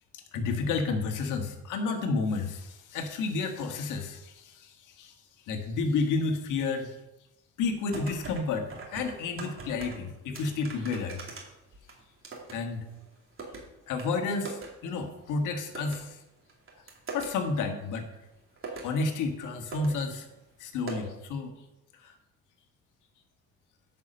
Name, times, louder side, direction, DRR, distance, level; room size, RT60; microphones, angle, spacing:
voice 1, 0.3-5.1 5.5-6.9 7.6-11.2 12.5-12.8 13.9-16.2 17.1-18.1 18.8-20.3 20.6-21.5 22.0-22.1, left 4 dB, 85° left, 4 dB, 1.5 m, -31 dB
sound 1, 7.6-8.4 8.7-10.0 10.3-12.6 12.9-13.6 14.0-14.1 14.4-14.7 15.0-15.1 15.7-16.0 16.5-17.3 18.1-18.2 18.6-18.9 19.4-19.5 19.7-19.9 20.2-20.3 20.9-21.0, right 3 dB, 45° right, 2.8 m, -41 dB
9.5 x 5.7 x 6.6 m, 0.96 s
cardioid pair, 90°, 30 cm